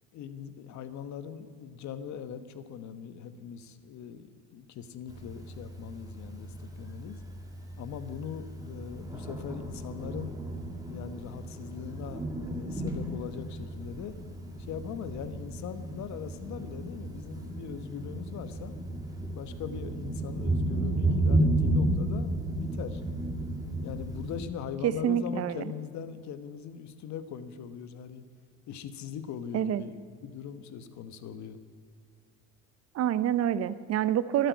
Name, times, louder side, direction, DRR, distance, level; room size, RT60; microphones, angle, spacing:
voice 1, 0.1-7.2 7.8-10.3 10.9-14.2 14.6-18.7 19.3-23.0 23.8-28.2 28.7-31.6, left 8 dB, 55° left, 12 dB, 1.2 m, -41 dB
Thunder, 5.1-24.4, right 1 dB, 10° right, 2.3 m, -33 dB
voice 2, 24.8-25.7 29.5-29.8 32.9-34.5, right 10 dB, 45° right, 16 dB, 0.8 m, -27 dB
12.5 x 9.4 x 9.3 m, 2.1 s
supercardioid pair, 85°, 35 cm